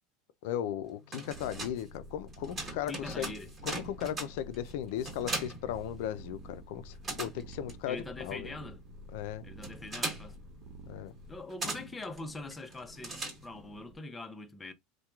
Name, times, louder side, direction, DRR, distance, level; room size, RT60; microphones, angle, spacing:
voice 1, 0.4-3.3 3.6-8.5 9.1-9.4 10.9-11.1, left 10 dB, 70° left, 0.4 m, -37 dB
sound 1, 0.9-6.5 6.7-13.8, right 2 dB, 25° right, 1.4 m, -41 dB
sound 2, 1.3-14.0, right 1 dB, 60° right, 0.6 m, -50 dB
voice 2, 2.9-3.5 7.9-8.8 9.4-10.4 11.3-14.7, left 2 dB, 15° left, 0.6 m, -43 dB
2.8 x 2.2 x 2.3 m
supercardioid pair, 105°, 0 cm